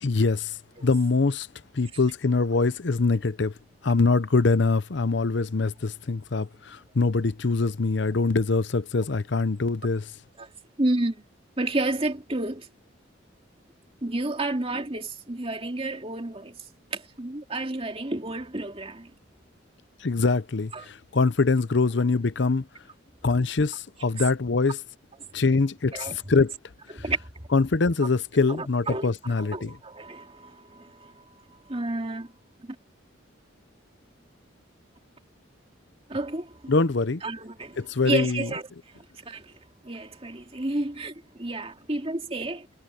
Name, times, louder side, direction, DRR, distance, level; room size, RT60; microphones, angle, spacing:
voice 1, 0.0-0.6 0.8-1.5 1.7-3.5 3.8-10.1 20.0-22.7 23.2-24.8 25.3-26.5 27.5-29.7 36.7-37.2 37.8-38.5, left 3 dB, 60° left, 0.7 m, -24 dB
voice 2, 10.8-11.2 11.6-12.7 14.0-16.6 16.9-19.1 20.7-20.9 25.9-26.2 26.9-27.5 28.5-31.2 31.7-32.3 32.6-32.8 36.1-36.7 37.2-38.6 39.3-39.6 39.8-42.7, right 2 dB, 30° right, 2.3 m, -31 dB
head